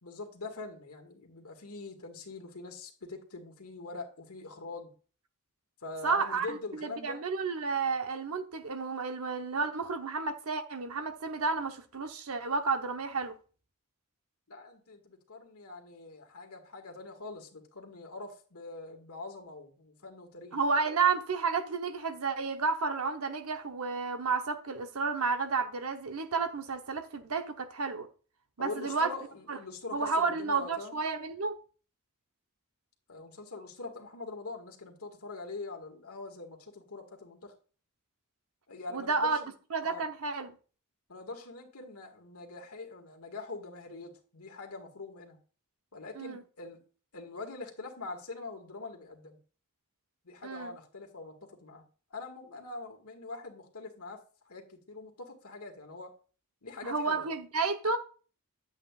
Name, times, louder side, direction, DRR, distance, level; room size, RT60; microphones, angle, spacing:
voice 1, 0.0-4.9 5.8-7.2 14.5-20.6 28.6-31.0 33.1-37.5 38.7-39.5 39.8-40.1 41.1-45.4 45.9-46.8 47.1-49.4 50.2-51.8 52.1-54.2 54.5-56.1 56.6-57.3, left 3 dB, 85° left, 1.9 m, -43 dB
voice 2, 6.0-13.3 20.5-28.1 28.6-29.1 29.5-29.6 29.9-31.6 38.9-39.4 39.7-40.5 46.1-46.4 50.4-50.8 56.8-58.0, right 4 dB, 75° right, 0.9 m, -31 dB
10.0 x 8.2 x 2.4 m
head